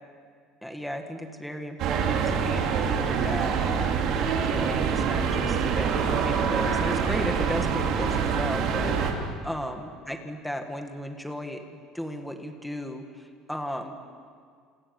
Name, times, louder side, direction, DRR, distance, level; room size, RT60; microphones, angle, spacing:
voice 1, 0.6-9.1 9.4-11.6 11.9-13.9, equal, ahead, 4 dB, 1.9 m, -35 dB
sound 1, 1.8-9.1, right 6 dB, 45° right, 3.4 m, -25 dB
28.5 x 28.0 x 7.3 m, 2.1 s
cardioid pair, 180°, 0 cm